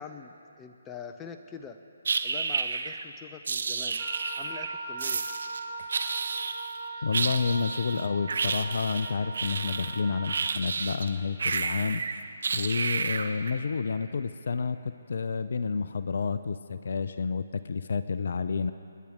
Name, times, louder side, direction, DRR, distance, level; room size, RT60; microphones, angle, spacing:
voice 1, 0.0-1.8 2.2-4.0 4.4-5.3, left 6 dB, 15° left, 6 dB, 0.8 m, -44 dB
Creature - Rat - Vocalizations, 2.0-3.0 3.5-4.7 5.0-5.6 5.9-6.8 7.1-11.1 11.4-13.5, right 4 dB, 65° right, 0.9 m, -31 dB
Wind instrument woodwind instrument, 4.0-10.5, right 2 dB, 20° right, 3.1 m, -40 dB
voice 2, 7.0-12.0 12.5-18.7, left 5 dB, 60° left, 12 dB, 0.6 m, -30 dB
29.0 x 10.0 x 3.6 m, 2.8 s
figure-of-eight pair, 140°, 0 cm